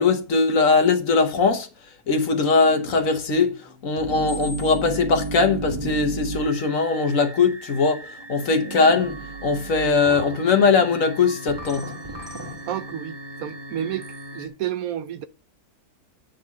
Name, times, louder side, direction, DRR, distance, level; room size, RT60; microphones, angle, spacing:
voice 1, 0.0-1.7 2.1-3.5 3.8-8.0 8.3-11.8, left 4 dB, 60° left, 1.4 m, -20 dB
sound 1, 2.6-14.5, right 2 dB, 20° right, 0.9 m, -35 dB
voice 2, 12.7-14.1 14.3-15.2, right 10 dB, 70° right, 0.9 m, -30 dB
9.1 x 3.8 x 7.1 m
omnidirectional pair, 1.7 m